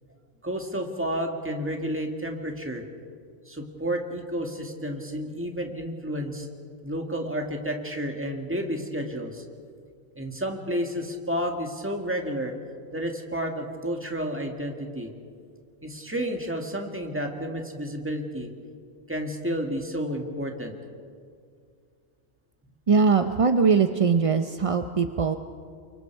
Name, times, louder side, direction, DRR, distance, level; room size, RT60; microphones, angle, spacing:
voice 1, 0.4-2.8 3.5-6.5 6.8-9.4 10.2-12.5 12.9-15.1 15.8-18.5 19.1-20.7, equal, 10° right, 2 dB, 1.9 m, -31 dB
voice 2, 22.9-25.4, right 5 dB, 40° right, 8 dB, 0.4 m, -21 dB
29.0 x 24.0 x 4.7 m, 2.2 s
omnidirectional pair, 1.4 m